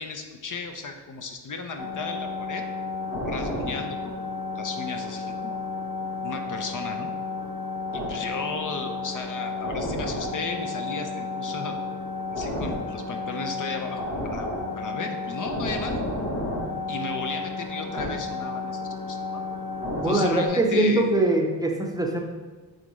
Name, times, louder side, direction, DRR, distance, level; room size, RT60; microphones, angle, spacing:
voice 1, 0.0-2.6 3.1-5.6 6.2-7.1 7.9-11.8 12.3-14.5 14.7-16.0 16.9-19.4 20.0-21.1, left 4 dB, 50° left, 5 dB, 0.7 m, -35 dB
sound 1, 1.8-20.5, left 2 dB, 75° left, 1.8 m, -32 dB
voice 2, 20.0-22.2, right 2 dB, 10° right, 1 dB, 0.7 m, -22 dB
9.0 x 3.7 x 3.1 m, 1.3 s
cardioid pair, 100°, 41 cm